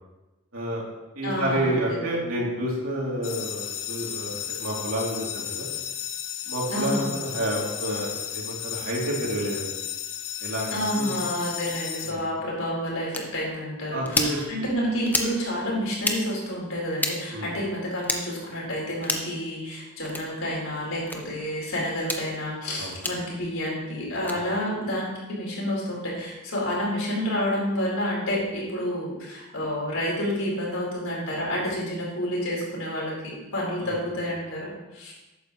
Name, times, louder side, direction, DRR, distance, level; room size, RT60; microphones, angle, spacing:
voice 1, 0.5-0.8 1.1-5.7 6.5-9.7 10.4-11.2 12.0-12.2 13.9-14.4 17.3-17.5 22.8-22.9 24.3-24.5 33.8-34.0, right 1 dB, 75° right, -3 dB, 3.1 m, -29 dB
voice 2, 1.2-2.3 6.7-7.1 10.7-35.1, equal, 90° left, -4 dB, 4.3 m, -29 dB
sound 1, 3.2-12.1, left 10 dB, 65° left, 0.9 m, -34 dB
sound 2, 13.1-13.2 14.1-14.3 15.1-15.3 16.0-16.2 17.0-17.2 18.0-18.2 19.0-19.3 20.1-20.2 21.1-21.2 22.0-22.2 23.0-23.2 24.2-24.4, left 2 dB, 10° left, 0.9 m, -27 dB
13.0 x 9.2 x 3.2 m, 1.1 s
head